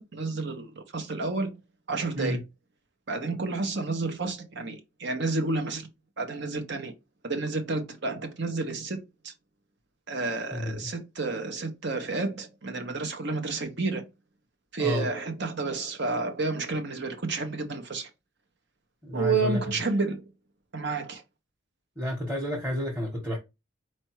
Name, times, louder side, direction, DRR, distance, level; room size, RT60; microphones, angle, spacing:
voice 1, 0.0-1.5 1.9-2.4 3.1-5.9 6.2-6.9 7.2-9.3 10.1-14.0 14.7-18.1 19.1-20.2 20.7-21.2, right 3 dB, 55° right, 0.9 m, -30 dB
voice 2, 19.0-19.6 22.0-23.4, left 1 dB, 10° right, 1.2 m, -30 dB
4.4 x 2.6 x 4.6 m
head